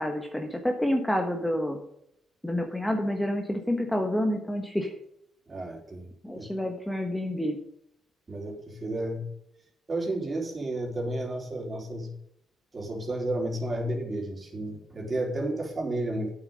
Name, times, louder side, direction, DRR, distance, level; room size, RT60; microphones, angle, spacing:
voice 1, 0.0-1.8 2.4-4.9 6.2-7.6, left 1 dB, 5° left, 3 dB, 1.4 m, -28 dB
voice 2, 5.5-6.4 8.3-9.3 9.9-12.1 12.7-16.4, right 1 dB, 30° right, 0 dB, 3.8 m, -32 dB
9.0 x 7.3 x 6.5 m, 0.75 s
cardioid pair, 90°, 0 cm